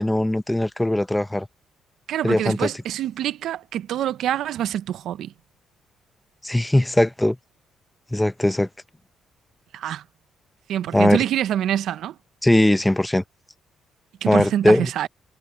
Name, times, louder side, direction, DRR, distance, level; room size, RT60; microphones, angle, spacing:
voice 1, 0.0-1.5 2.2-2.7 6.4-7.4 8.1-8.7 10.9-11.2 12.4-13.2 14.3-14.9, left 1 dB, 10° left, 0.8 m, -19 dB
voice 2, 2.1-5.3 9.7-10.0 10.7-12.2 14.2-15.1, right 11 dB, 75° right, 0.8 m, -25 dB
cardioid pair, 90°, 0 cm